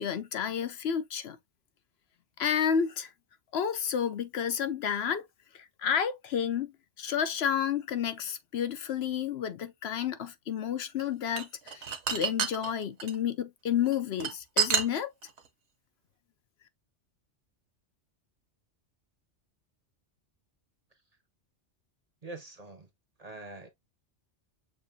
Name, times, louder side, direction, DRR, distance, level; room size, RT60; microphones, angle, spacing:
voice 1, 0.0-1.4 2.4-3.1 3.5-5.2 5.5-6.7 7.0-15.1, left 8 dB, 65° left, 0.8 m, -31 dB
sound 1, 11.0-13.2 13.9-15.4, right 7 dB, 70° right, 1.1 m, -29 dB
voice 2, 22.2-22.9 23.2-23.7, right 2 dB, 40° right, 0.8 m, -44 dB
6.6 x 2.6 x 2.6 m
omnidirectional pair, 1.2 m